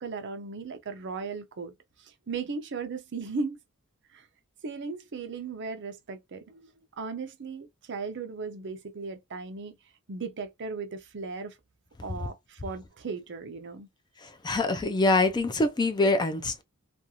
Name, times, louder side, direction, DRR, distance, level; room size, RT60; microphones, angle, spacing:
voice 1, 0.0-1.7 2.0-3.6 4.1-4.3 4.6-6.7 7.0-9.7 10.1-11.6 12.0-13.9, right 4 dB, 55° right, 0.6 m, -37 dB
voice 2, 14.2-16.6, left 2 dB, 20° left, 0.4 m, -25 dB
2.5 x 2.3 x 2.8 m
head